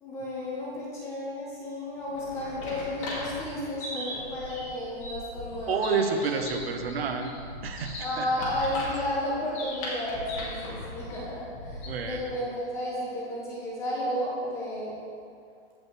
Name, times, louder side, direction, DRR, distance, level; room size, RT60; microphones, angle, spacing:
voice 1, 0.0-6.1 8.0-15.0, left 1 dB, 10° left, -6 dB, 0.9 m, -33 dB
sound 1, 2.0-12.2, left 1 dB, 35° left, 2.0 m, -38 dB
voice 2, 5.7-7.4 7.6-8.3 11.9-12.3, right 5 dB, 70° right, 5 dB, 1.0 m, -29 dB
15.0 x 5.4 x 3.2 m, 2.4 s
hypercardioid pair, 175°, 31 cm